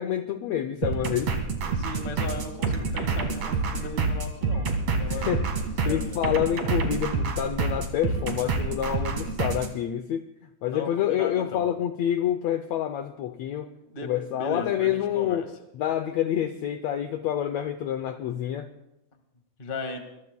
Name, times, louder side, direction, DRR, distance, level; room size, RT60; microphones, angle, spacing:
voice 1, 0.0-1.3 5.1-5.5 5.9-10.3 10.6-13.7 14.0-15.5 15.8-18.7, left 10 dB, 80° left, 8 dB, 1.6 m, -27 dB
sound 1, 0.8-9.7, right 4 dB, 55° right, 2.8 m, -28 dB
voice 2, 1.7-4.7 5.0-5.5 5.8-6.2 10.6-11.7 13.9-15.5 19.6-20.0, left 3 dB, 25° left, 5 dB, 1.1 m, -37 dB
25.0 x 22.0 x 2.3 m, 0.88 s
omnidirectional pair, 3.8 m